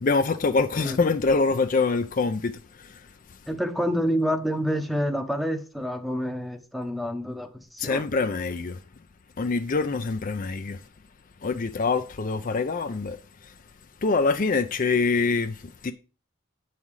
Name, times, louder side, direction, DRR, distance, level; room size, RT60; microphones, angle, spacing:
voice 1, 0.0-3.1 7.8-8.8 9.4-10.8 11.4-13.5 14.0-15.9, left 4 dB, 40° left, 0.4 m, -25 dB
voice 2, 3.5-8.0, equal, ahead, 0.8 m, -28 dB
8.5 x 5.6 x 4.7 m
head